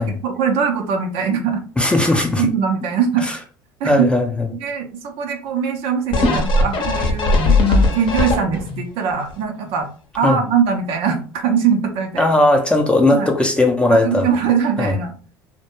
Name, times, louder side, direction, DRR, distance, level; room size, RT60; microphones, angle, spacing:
voice 1, 0.0-1.6 2.4-3.2 3.8-4.1 4.5-9.9 10.1-12.3 13.1-13.3 13.9-15.1, right 6 dB, 60° right, 0.5 m, -21 dB
voice 2, 1.8-2.5 3.2-3.4 3.8-4.5 10.2-10.4 12.2-14.3 14.8-14.9, left 2 dB, 10° left, 0.5 m, -17 dB
sound 1, 6.1-8.8 9.3-9.4, left 3 dB, 50° left, 0.7 m, -17 dB
2.1 x 2.1 x 2.9 m
hypercardioid pair, 75°, 11 cm